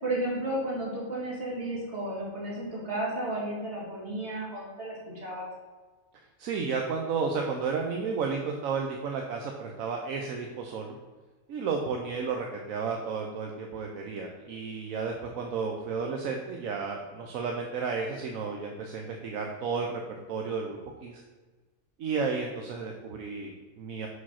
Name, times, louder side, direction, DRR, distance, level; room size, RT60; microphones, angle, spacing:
voice 1, 0.0-5.5, right 1 dB, 50° right, -5 dB, 2.6 m, -33 dB
voice 2, 6.4-10.9 11.5-20.0 20.3-21.2 22.0-24.1, right 5 dB, 80° right, 2 dB, 1.1 m, -32 dB
6.2 x 5.0 x 5.6 m, 1.3 s
omnidirectional pair, 1.4 m